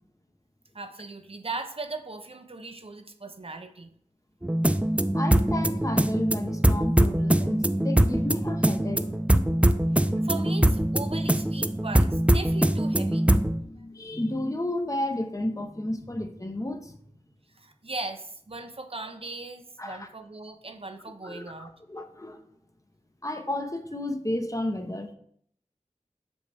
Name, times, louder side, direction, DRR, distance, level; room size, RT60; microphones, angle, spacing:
voice 1, 0.7-3.9 10.2-13.3 17.6-21.7, right 3 dB, 50° right, 0.6 m, -38 dB
sound 1, 4.4-13.6, right 1 dB, 10° right, 0.4 m, -23 dB
voice 2, 5.1-9.1 13.5-17.0 19.8-20.1 21.2-22.4 23.2-25.1, left 1 dB, 25° left, 0.8 m, -32 dB
6.4 x 5.2 x 3.4 m
wide cardioid pair, 40°, 13 cm